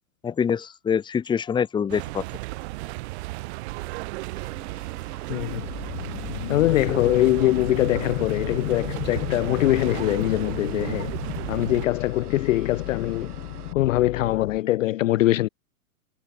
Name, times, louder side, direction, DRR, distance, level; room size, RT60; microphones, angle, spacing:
voice 1, 0.2-2.2, left 7 dB, 10° left, 1.0 m, -25 dB
sound 1, 1.9-11.9, right 22 dB, 45° right, 4.6 m, -34 dB
sound 2, 4.4-13.7, right 8 dB, 80° right, 3.4 m, -44 dB
voice 2, 5.3-5.7 6.5-11.1 11.5-13.3 13.7-15.5, left 15 dB, 60° left, 0.5 m, -23 dB
sound 3, 5.5-14.6, left 23 dB, 40° left, 1.0 m, -34 dB
hypercardioid pair, 125°, 44 cm